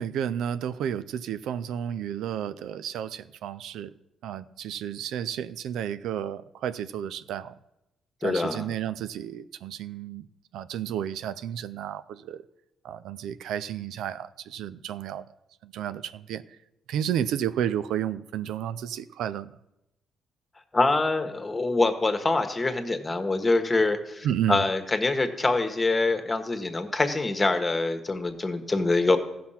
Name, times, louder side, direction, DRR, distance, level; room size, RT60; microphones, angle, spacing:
voice 1, 0.0-3.9 4.2-7.5 8.2-10.3 10.5-12.4 12.8-15.2 15.6-16.4 16.9-19.5 24.2-24.7, right 10 dB, 80° right, 0.4 m, -32 dB
voice 2, 8.2-8.7 20.7-29.2, left 3 dB, 25° left, 1.4 m, -25 dB
14.5 x 5.9 x 5.7 m
supercardioid pair, 70°, 0 cm